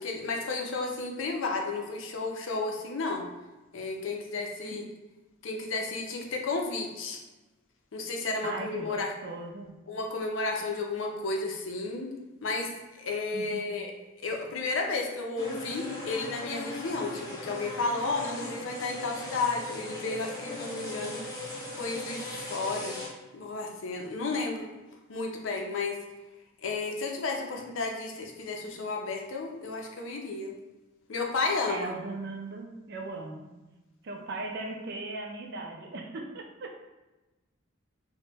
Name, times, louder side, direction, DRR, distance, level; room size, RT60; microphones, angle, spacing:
voice 1, 0.0-3.3 3.7-4.8 5.4-7.2 7.9-9.1 9.9-12.1 12.4-13.9 14.2-23.0 23.3-24.7 25.1-26.0 26.6-30.5 31.1-31.9, left 3 dB, 70° left, 1 dB, 0.5 m, -32 dB
voice 2, 8.4-9.7 13.3-13.7 31.7-33.5 34.0-36.9, right 2 dB, 55° right, 2 dB, 0.4 m, -38 dB
sound 1, 15.4-23.1, left 2 dB, 20° left, 0.7 m, -38 dB
2.9 x 2.1 x 3.3 m, 1.1 s
head